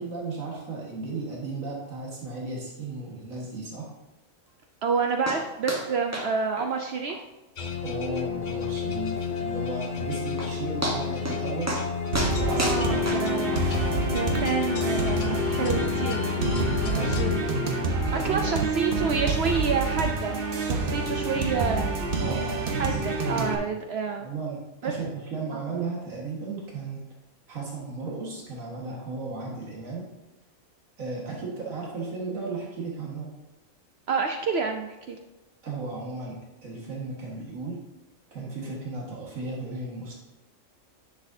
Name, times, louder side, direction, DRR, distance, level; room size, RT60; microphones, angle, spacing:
voice 1, 0.0-3.9 7.8-11.8 12.4-13.0 13.9-14.1 16.9-17.6 18.1-18.6 22.2-23.1 24.1-27.0 27.5-30.1 31.0-33.3 35.6-37.8 38.3-40.1, right 3 dB, 90° right, -3 dB, 2.0 m, -35 dB
voice 2, 4.8-7.2 12.5-13.6 14.0-16.2 16.8-17.5 18.1-21.9 22.8-24.3 24.8-24.9 25.5-25.6 34.1-35.2, right 5 dB, 60° right, 4 dB, 0.7 m, -29 dB
sound 1, 5.3-5.4 5.7-5.9 6.1-6.3 6.6-6.7 7.1-7.2 7.6-7.7 8.2-8.3 9.9-10.0 10.4-10.5 10.8-11.4 11.7-11.9 12.1-13.6 14.3-14.4, right 1 dB, 15° right, 0.9 m, -30 dB
sound 2, 7.6-18.2, left 6 dB, 50° left, 0.6 m, -30 dB
sound 3, 12.1-23.5, right 3 dB, 45° right, 1.0 m, -28 dB
10.5 x 6.4 x 2.7 m, 1.0 s
omnidirectional pair, 1.4 m